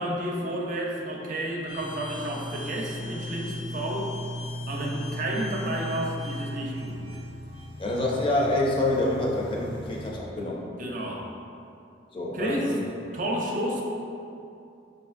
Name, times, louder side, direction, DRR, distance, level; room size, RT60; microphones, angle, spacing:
voice 1, 0.0-4.1 4.7-7.0 10.8-11.3 12.3-12.8 13.1-13.8, right 1 dB, 50° right, -1 dB, 0.5 m, -31 dB
sound 1, 1.7-10.1, left 1 dB, 75° left, 0.7 m, -37 dB
voice 2, 7.8-10.6 12.1-12.8, left 1 dB, 30° left, -3 dB, 0.6 m, -27 dB
6.3 x 2.5 x 2.5 m, 2.6 s
head